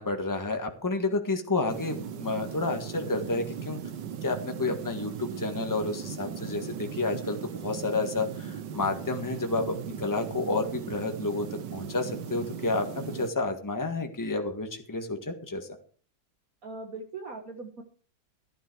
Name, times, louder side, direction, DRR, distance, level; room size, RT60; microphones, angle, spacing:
voice 1, 0.0-3.8 4.2-15.7, left 3 dB, 10° left, 5 dB, 1.5 m, -30 dB
sound 1, 1.7-13.3, right 8 dB, 75° right, 1.6 m, -38 dB
voice 2, 16.6-17.8, right 3 dB, 55° right, 3 dB, 1.8 m, -40 dB
14.5 x 10.5 x 4.7 m, 0.43 s
omnidirectional pair, 1.9 m